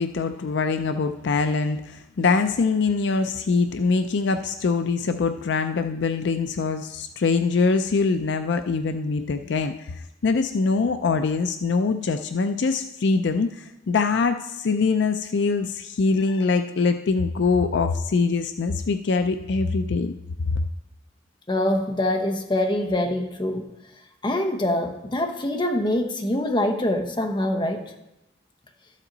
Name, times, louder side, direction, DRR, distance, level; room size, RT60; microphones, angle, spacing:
voice 1, 0.0-20.2 20.5-20.6, left 4 dB, 65° left, 8 dB, 0.4 m, -23 dB
voice 2, 21.5-23.7 24.2-27.9, left 1 dB, 25° left, 5 dB, 0.9 m, -24 dB
12.5 x 7.4 x 3.9 m, 0.91 s
head